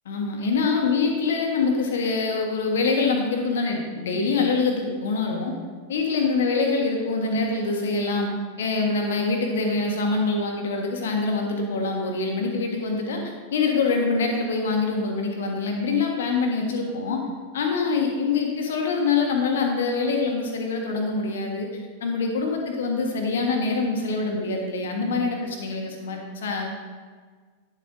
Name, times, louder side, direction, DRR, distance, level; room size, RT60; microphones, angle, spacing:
voice 1, 0.0-5.5 5.9-8.3 8.6-17.2 17.5-21.7 22.0-26.7, left 4 dB, 60° left, 2 dB, 1.5 m, -25 dB
10.0 x 7.6 x 3.9 m, 1.5 s
figure-of-eight pair, 90°, 0 cm